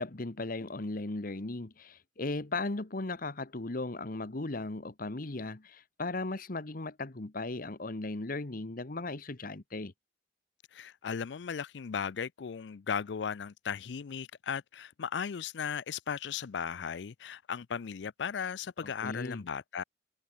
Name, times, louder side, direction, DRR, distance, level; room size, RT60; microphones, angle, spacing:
voice 1, 0.0-9.9 18.8-19.4, left 2 dB, 50° left, 1.2 m, -37 dB
voice 2, 10.7-19.8, left 7 dB, 75° left, 0.5 m, -36 dB
head